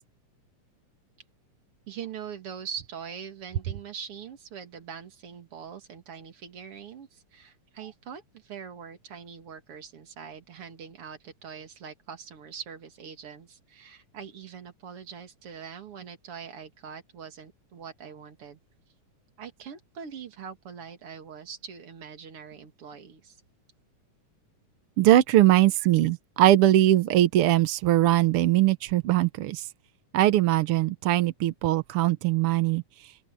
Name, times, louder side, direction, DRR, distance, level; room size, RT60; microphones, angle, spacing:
voice 1, 1.9-18.6 19.4-23.4, right 7 dB, 50° right, 2.7 m, -42 dB
voice 2, 25.0-29.7 30.1-32.8, right 14 dB, 75° right, 1.3 m, -21 dB
open air
omnidirectional pair, 3.6 m